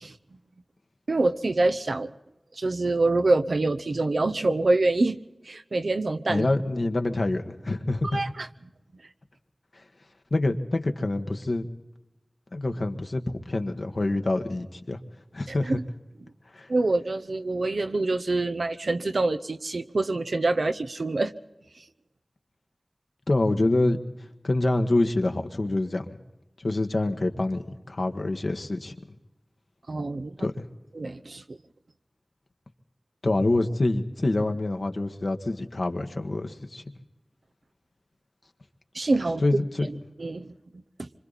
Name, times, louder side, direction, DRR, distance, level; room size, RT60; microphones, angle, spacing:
voice 1, 1.1-2.1 2.6-5.2 5.5-6.5 8.1-8.5 15.5-15.8 16.7-21.3 29.9-30.5 30.9-31.6 38.9-39.4 39.8-40.5 41.0-41.1, right 2 dB, 85° right, 8 dB, 0.8 m, -26 dB
voice 2, 6.3-8.2 10.3-11.7 12.5-15.0 15.3-15.8 16.5-16.7 23.3-24.0 24.4-26.0 26.6-28.9 30.4-30.6 33.2-36.8 39.4-39.9, left 2 dB, 70° left, 5 dB, 1.5 m, -26 dB
26.0 x 25.5 x 4.1 m, 0.96 s
wide cardioid pair, 45°, 0 cm